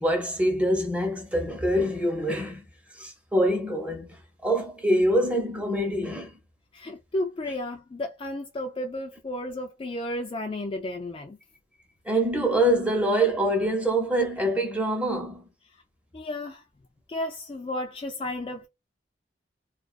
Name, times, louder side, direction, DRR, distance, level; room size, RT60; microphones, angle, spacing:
voice 1, 0.0-2.6 3.0-6.4 12.1-15.4, right 1 dB, 5° right, 0.7 m, -25 dB
voice 2, 6.7-11.4 16.1-16.6 17.1-18.7, left 1 dB, 30° left, 0.3 m, -33 dB
2.3 x 2.3 x 2.4 m
head